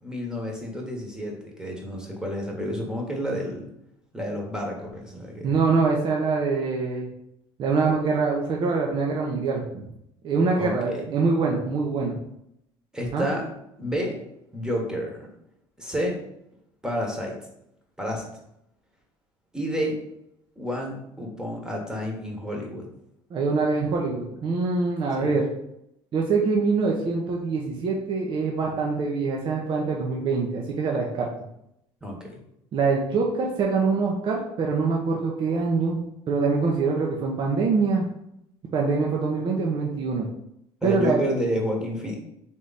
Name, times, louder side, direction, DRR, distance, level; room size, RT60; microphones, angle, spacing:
voice 1, 0.0-3.7 4.1-5.5 10.6-11.1 12.9-13.5 13.8-14.2 14.5-15.3 15.8-16.2 16.8-17.4 18.0-18.3 19.5-20.0 20.6-22.9 25.2-25.3 32.0-32.4 40.8-42.2, equal, 5° right, 0 dB, 1.2 m, -30 dB
voice 2, 5.4-7.1 7.6-9.8 10.2-12.1 13.1-13.3 23.3-25.5 26.1-31.3 32.7-38.1 38.7-40.3 40.8-41.2, right 4 dB, 50° right, -1 dB, 0.8 m, -24 dB
3.6 x 3.1 x 4.1 m, 0.78 s
supercardioid pair, 100°, 11 cm